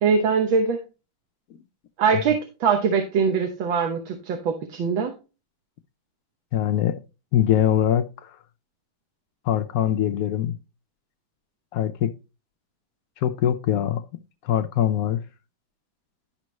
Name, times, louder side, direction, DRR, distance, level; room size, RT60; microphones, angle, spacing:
voice 1, 0.0-0.8 2.0-5.1, right 5 dB, 75° right, 1.8 m, -22 dB
voice 2, 6.5-7.0 7.3-8.3 9.5-10.5 11.7-12.1 13.2-14.0 14.4-15.2, left 10 dB, 75° left, 0.8 m, -22 dB
11.5 x 5.4 x 3.0 m
omnidirectional pair, 2.2 m